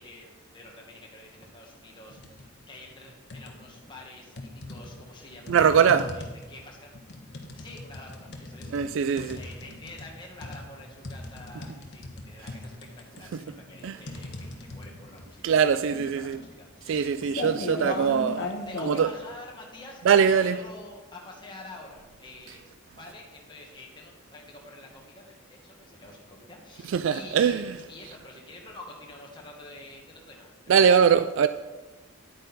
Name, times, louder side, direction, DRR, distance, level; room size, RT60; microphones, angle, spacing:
voice 1, 0.0-6.2 6.5-6.9 7.5-18.2 18.7-22.6 22.9-31.0, left 2 dB, 20° left, 1.6 m, -47 dB
sound 1, 2.1-2.5 2.9-3.8 4.4-19.0, left 2 dB, 55° left, 1.3 m, -38 dB
voice 2, 5.5-6.1 8.7-9.4 13.8-14.0 15.4-16.4 16.9-18.5 18.8-19.1 20.1-20.6 26.9-27.8 30.7-31.5, right 7 dB, 65° right, 0.3 m, -22 dB
9.6 x 9.0 x 4.1 m
head